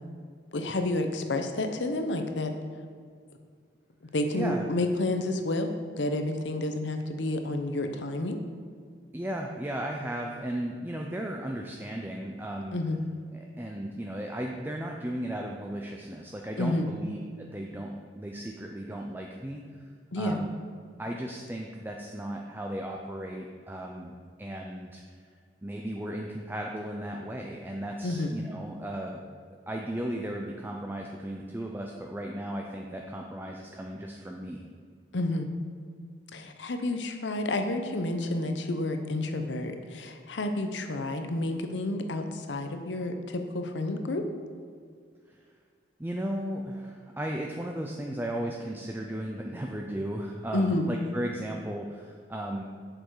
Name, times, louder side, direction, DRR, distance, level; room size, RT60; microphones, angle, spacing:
voice 1, 0.5-2.5 4.1-8.4 12.7-13.0 16.6-16.9 20.1-20.4 28.0-28.3 35.1-35.5 36.3-44.2 50.5-50.9, left 2 dB, 85° left, 6 dB, 0.8 m, -30 dB
voice 2, 4.3-4.6 9.1-12.8 13.3-19.7 20.2-20.5 21.0-25.0 25.6-29.2 29.7-34.6 45.3-45.4 46.0-52.6, right 1 dB, 10° right, 1 dB, 0.5 m, -35 dB
7.7 x 6.9 x 4.7 m, 2.1 s
head